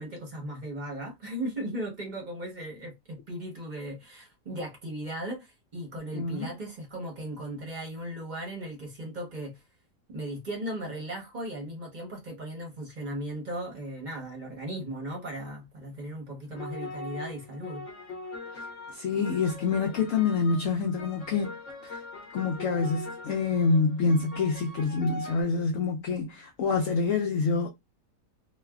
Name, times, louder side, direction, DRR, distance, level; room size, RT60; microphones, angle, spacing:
voice 1, 0.0-9.6 10.1-17.8, right 1 dB, 35° right, 0.8 m, -37 dB
voice 2, 6.1-6.5 18.9-21.5 21.8-22.0 22.3-27.7, left 4 dB, 70° left, 0.7 m, -26 dB
sound 1, 16.5-25.4, left 3 dB, 50° left, 1.2 m, -41 dB
3.1 x 2.1 x 2.2 m
omnidirectional pair, 1.8 m